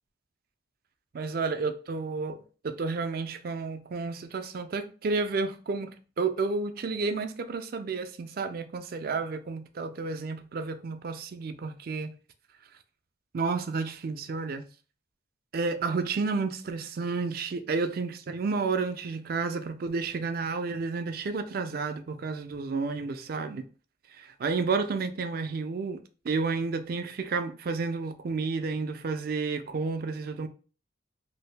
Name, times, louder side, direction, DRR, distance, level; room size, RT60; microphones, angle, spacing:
voice 1, 1.1-12.1 13.3-14.7 15.5-23.6 24.1-26.0 26.2-30.5, right 4 dB, 50° right, 0.4 m, -31 dB
2.8 x 2.6 x 3.2 m
head